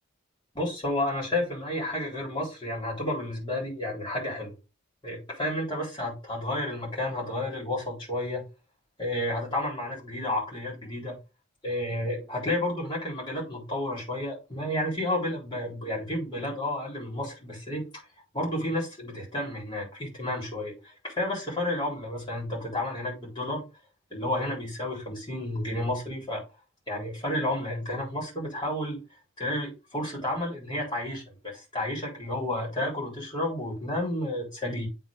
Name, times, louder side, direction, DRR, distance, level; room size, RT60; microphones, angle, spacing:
voice 1, 0.5-4.5 5.0-8.5 9.0-11.2 11.6-17.8 18.3-23.6 24.1-26.4 26.9-29.0 29.4-34.9, left 1 dB, 20° left, 3.8 m, -31 dB
8.1 x 3.9 x 3.6 m
head